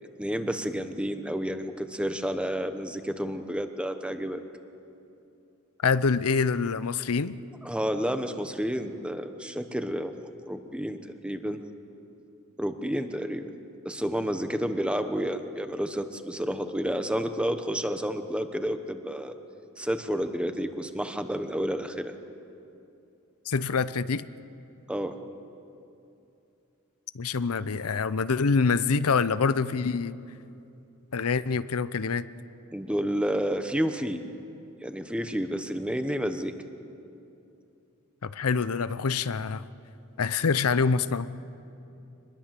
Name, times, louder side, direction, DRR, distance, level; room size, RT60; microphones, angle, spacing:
voice 1, 0.2-4.4 7.6-10.2 10.4-11.6 12.6-13.5 13.8-19.3 19.8-22.1 24.9-25.2 32.7-34.2 34.8-36.5, equal, 5° right, 8 dB, 1.0 m, -30 dB
voice 2, 5.8-7.4 23.5-24.3 27.1-30.1 31.1-32.3 38.2-39.7 40.2-41.3, left 5 dB, 90° left, 14 dB, 0.7 m, -26 dB
25.0 x 21.0 x 7.6 m, 2.7 s
head